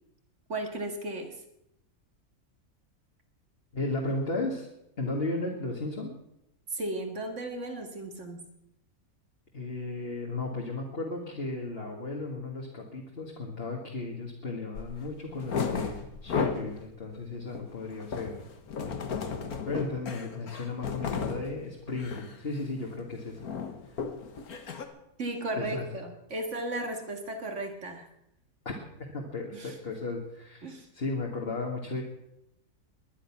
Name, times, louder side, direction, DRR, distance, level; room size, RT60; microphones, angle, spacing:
voice 1, 0.5-1.4 6.7-8.5 25.2-28.1 29.5-29.8 30.6-30.9, right 1 dB, 55° right, 6 dB, 2.4 m, -35 dB
voice 2, 3.7-4.7 5.0-6.1 9.5-18.4 19.7-23.4 25.6-25.9 28.7-28.8 29.1-32.0, left 3 dB, 40° left, -1 dB, 2.2 m, -35 dB
sound 1, 14.7-14.9 15.3-16.8 17.2-21.5 21.9-22.3 22.6-22.9 23.1-24.8, left 5 dB, 80° left, 1.9 m, -34 dB
21.0 x 10.5 x 6.0 m, 0.84 s
omnidirectional pair, 1.5 m